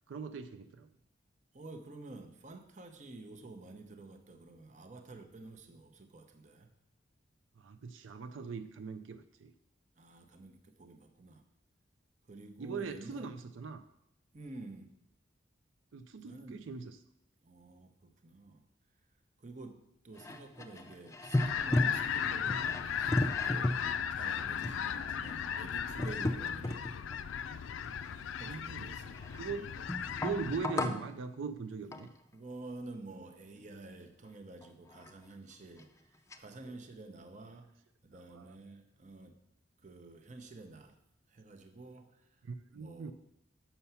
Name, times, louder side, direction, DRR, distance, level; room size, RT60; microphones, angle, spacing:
voice 1, 0.1-0.9 7.6-9.5 12.6-13.8 15.9-17.0 28.4-28.9 29.4-29.8 30.2-32.1 36.7-36.8 38.1-38.6 42.4-43.1, right 5 dB, 80° right, 0.4 m, -41 dB
voice 2, 1.5-6.7 10.0-11.4 12.3-13.3 14.3-14.9 16.2-16.6 17.4-18.6 19.4-19.7 20.0-23.8 24.1-27.1 28.4-29.1 32.3-35.9 36.4-37.7 38.0-39.3 39.8-40.9 41.3-42.1 42.7-43.1, right 2 dB, 40° right, 0.7 m, -49 dB
sound 1, 20.2-27.2 27.8-29.5 29.9-31.1 31.9-32.2 34.6-34.7 34.9-35.1 35.8-35.9 36.3-36.4, left 1 dB, 15° left, 0.4 m, -36 dB
sound 2, 21.4-30.7, left 8 dB, 85° left, 0.4 m, -36 dB
6.9 x 5.7 x 5.6 m
head